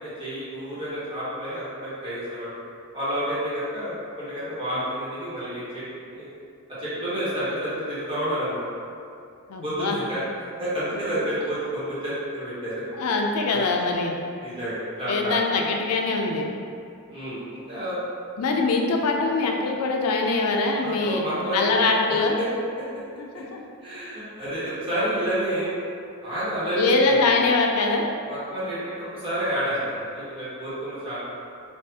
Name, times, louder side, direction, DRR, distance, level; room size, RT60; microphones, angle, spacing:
voice 1, 0.0-2.6 2.9-5.8 6.1-6.3 6.8-8.6 9.6-10.2 10.6-12.8 13.5-13.6 14.4-15.5 17.1-18.0 20.8-22.2 23.8-25.7 26.2-27.2 28.2-31.4, right 1 dB, 25° right, -12 dB, 1.2 m, -29 dB
voice 2, 9.5-10.0 13.0-14.1 15.1-16.5 18.4-21.2 21.5-22.3 23.2-23.6 26.7-28.0, left 3 dB, 90° left, 1 dB, 0.4 m, -23 dB
4.3 x 2.4 x 2.7 m, 2.5 s
head